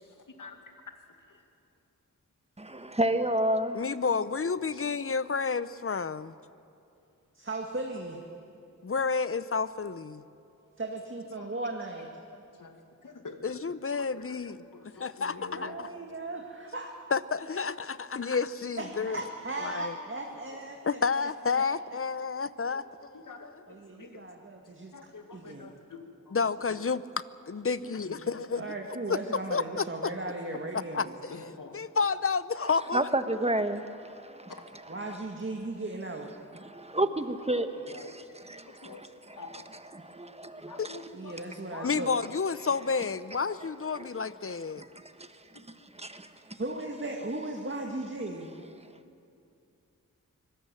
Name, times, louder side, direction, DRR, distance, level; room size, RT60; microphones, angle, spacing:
voice 1, 2.6-3.8 32.9-34.5 36.6-39.6 39.9-41.0 43.9-44.1 44.8-45.3 45.5-45.6 45.9-46.3, right 1 dB, 20° right, 9 dB, 1.4 m, -31 dB
voice 2, 3.7-6.3 8.8-10.2 13.4-14.6 15.0-15.9 17.1-19.2 19.6-19.9 20.8-23.3 26.3-27.0 27.5-28.7 29.1-29.2 29.5-30.1 30.9-33.1 40.8-40.9 41.8-44.8, left 5 dB, 45° left, 16 dB, 0.7 m, -30 dB
voice 3, 4.6-4.9 11.4-11.5 12.6-12.8 13.0-13.4 13.9-15.8 20.5-20.6 22.7-22.8 23.1-24.2 24.9-26.4 26.7-26.8 28.0-28.7 29.1-29.2 29.9-30.3 31.0-31.8 37.0-37.2 37.9-38.2 38.7-39.0 39.4-39.6 40.7-41.3 41.7-41.9 45.5-45.6 46.0-46.1, left 4 dB, 75° left, 5 dB, 2.1 m, -47 dB
voice 4, 7.3-8.2 10.8-12.1 15.5-16.9 18.8-21.3 21.6-21.7 23.7-25.7 28.5-31.1 34.9-36.3 41.1-42.2 46.6-48.6, right 2 dB, 40° right, 1 dB, 2.1 m, -37 dB
24.5 x 17.0 x 7.6 m, 2.6 s
cardioid pair, 45°, 32 cm